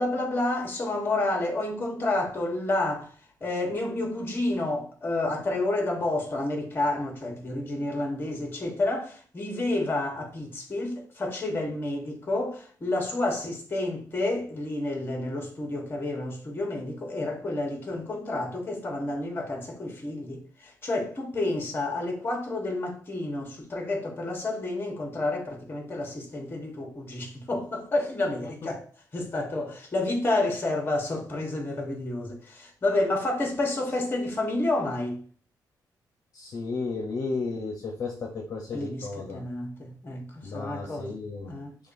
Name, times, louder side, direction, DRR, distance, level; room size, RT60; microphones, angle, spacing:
voice 1, 0.0-3.1 3.4-28.8 29.1-35.2 38.7-41.2 41.5-41.7, left 2 dB, 30° left, 1.1 m, -30 dB
voice 2, 36.3-39.4 40.4-41.5, left 4 dB, 55° left, 0.8 m, -33 dB
6.1 x 2.3 x 2.6 m
cardioid pair, 110°, 7 cm